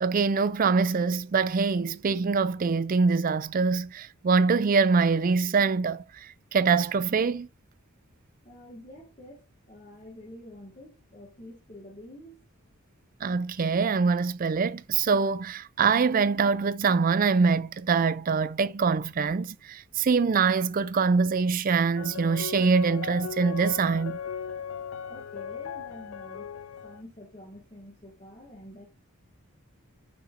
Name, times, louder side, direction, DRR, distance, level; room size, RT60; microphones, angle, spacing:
voice 1, 0.0-7.5 13.2-24.2, right 5 dB, 40° right, 0.4 m, -24 dB
voice 2, 8.4-12.4 25.1-26.5 26.8-28.9, left 1 dB, 30° left, 1.7 m, -47 dB
sound 1, 22.0-27.0, left 7 dB, 60° left, 0.3 m, -37 dB
6.8 x 5.9 x 2.5 m
head